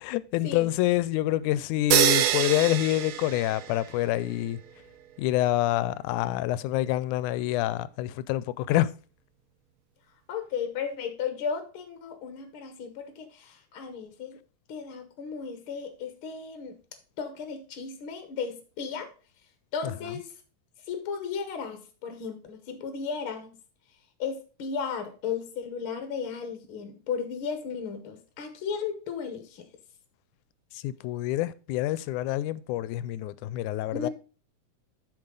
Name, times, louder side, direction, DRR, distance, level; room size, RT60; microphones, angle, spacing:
voice 1, 0.0-4.6 5.2-8.9 30.7-34.1, left 14 dB, 90° left, 2.0 m, -27 dB
sound 1, 1.9-4.0, right 11 dB, 75° right, 1.9 m, -25 dB
voice 2, 10.3-14.4 14.7-16.8 17.2-19.1 19.7-20.3 20.9-23.5 24.2-29.7 33.9-34.1, left 6 dB, 60° left, 1.5 m, -35 dB
8.8 x 6.1 x 3.8 m
omnidirectional pair, 3.4 m